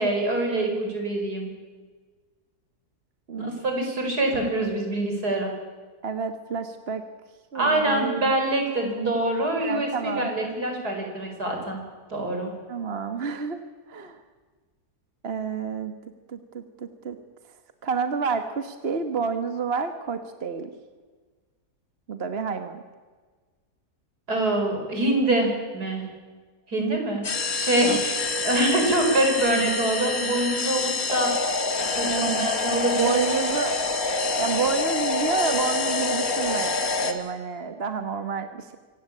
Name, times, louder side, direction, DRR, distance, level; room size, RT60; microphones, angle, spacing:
voice 1, 0.0-1.5 3.4-5.5 7.5-11.8 12.1-12.5 24.3-26.1 26.7-27.2 27.5-31.4 32.0-33.1, right 1 dB, 75° right, 3 dB, 5.5 m, -25 dB
voice 2, 6.0-7.0 7.5-8.2 9.6-10.3 12.7-13.6 13.9-14.2 15.2-15.9 16.3-17.2 17.8-20.7 22.1-22.8 27.8-28.0 32.0-32.5 32.9-33.8 34.4-38.8, right 5 dB, 40° right, 8 dB, 1.4 m, -29 dB
sound 1, 27.2-37.1, left 3 dB, 60° left, 2.4 m, -26 dB
25.5 x 17.0 x 8.5 m, 1.4 s
omnidirectional pair, 1.7 m